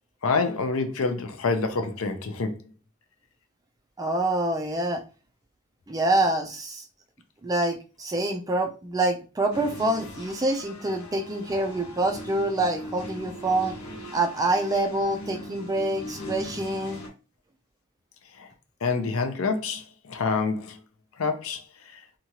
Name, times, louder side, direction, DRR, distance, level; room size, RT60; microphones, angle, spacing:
voice 1, 0.2-2.6 18.3-18.5 18.8-20.8 21.2-22.0, left 4 dB, 65° left, 0.5 m, -27 dB
voice 2, 4.0-5.0 5.9-6.8 7.4-13.8 14.1-17.0, right 2 dB, 15° right, 0.3 m, -26 dB
sound 1, 9.5-17.1, left 1 dB, 85° left, 1.0 m, -40 dB
2.9 x 2.3 x 2.8 m
head